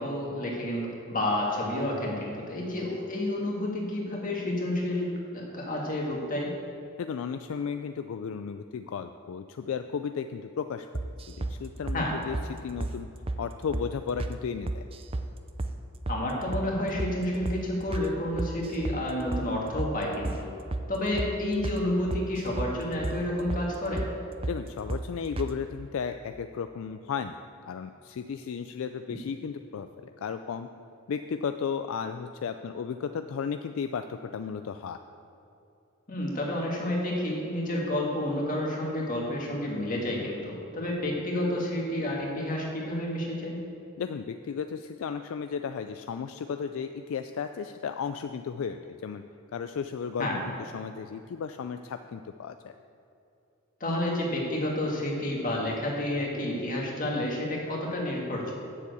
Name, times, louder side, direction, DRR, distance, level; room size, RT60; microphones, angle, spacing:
voice 1, 0.0-6.5 11.9-12.1 16.1-20.5 20.9-24.0 36.1-43.6 50.2-50.4 53.8-58.5, left 1 dB, 35° left, -2 dB, 1.9 m, -30 dB
voice 2, 7.0-10.9 11.3-13.1 13.4-14.8 24.5-27.4 27.7-30.7 31.1-35.0 44.0-49.2 49.5-52.7, left 6 dB, 65° left, 8 dB, 0.3 m, -34 dB
sound 1, 10.9-11.6 11.9-12.0 12.3-12.5 12.8-13.0 13.3-13.4 13.7-13.9 14.2-14.4 14.7-15.3 15.6-15.8 16.1-16.2 16.5-16.7 17.0-17.2 17.5-17.6 17.9-18.1 18.4-19.0 19.3-19.5 19.8-19.9 20.2-20.4 20.7-20.9 21.2-21.3 21.6-21.8 22.1-22.7 23.0-23.2 23.5-23.7 24.0-24.1 24.4-24.6 24.9-25.1 25.4-25.5, right 2 dB, 25° right, 0.4 m, -32 dB
7.4 x 6.9 x 8.1 m, 2.8 s
head